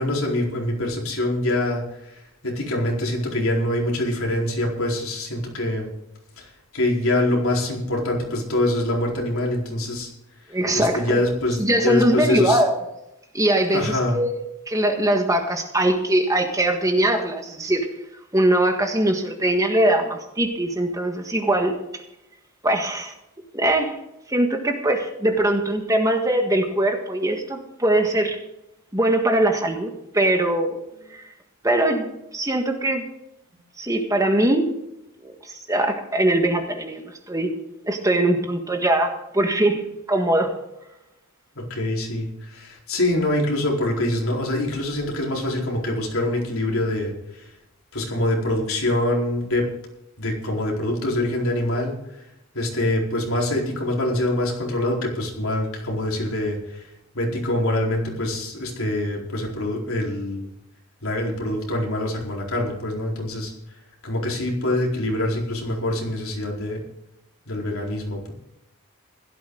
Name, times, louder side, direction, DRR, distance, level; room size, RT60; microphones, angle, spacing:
voice 1, 0.0-5.9 6.4-10.1 10.5-12.6 13.7-14.2 41.6-47.5 47.9-49.7 50.2-52.2 52.5-60.5 61.0-63.5 64.0-66.8 67.5-68.3, left 1 dB, 75° left, -1 dB, 4.4 m, -25 dB
voice 2, 10.5-11.1 11.6-12.8 13.3-14.4 14.7-17.9 18.3-22.0 22.6-23.1 23.5-24.0 24.3-28.4 28.9-30.8 31.1-31.2 31.6-33.0 33.8-34.7 35.4-37.5 37.9-40.5, right 1 dB, 15° right, 4 dB, 1.6 m, -21 dB
16.0 x 13.0 x 4.0 m, 0.86 s
head